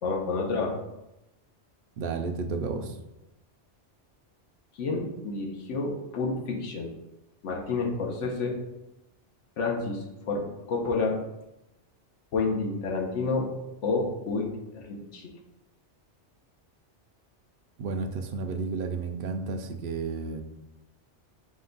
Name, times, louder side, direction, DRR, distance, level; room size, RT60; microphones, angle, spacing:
voice 1, 0.0-0.7 4.7-6.9 7.4-8.6 9.6-11.2 12.3-13.5 13.8-15.3, left 3 dB, 90° left, 0 dB, 1.1 m, -29 dB
voice 2, 2.0-3.0 17.8-20.4, right 4 dB, 60° right, 6 dB, 0.6 m, -32 dB
5.2 x 2.2 x 3.8 m, 0.92 s
omnidirectional pair, 1.2 m